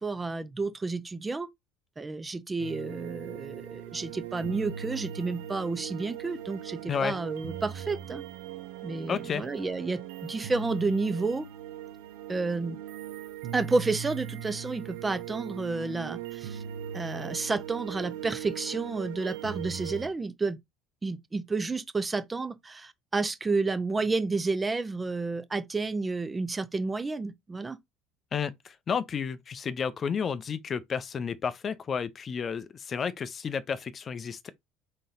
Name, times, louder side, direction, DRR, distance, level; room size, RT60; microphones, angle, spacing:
voice 1, 0.0-1.5 2.0-8.2 8.8-11.5 12.3-12.8 13.5-16.6 16.9-20.6 21.0-27.8, right 3 dB, 20° right, 0.6 m, -31 dB
sound 1, 2.6-20.1, right 10 dB, 70° right, 0.5 m, -40 dB
voice 2, 9.1-9.4 28.3-34.5, left 6 dB, 40° left, 0.5 m, -31 dB
4.1 x 3.8 x 2.4 m
hypercardioid pair, 65°, 0 cm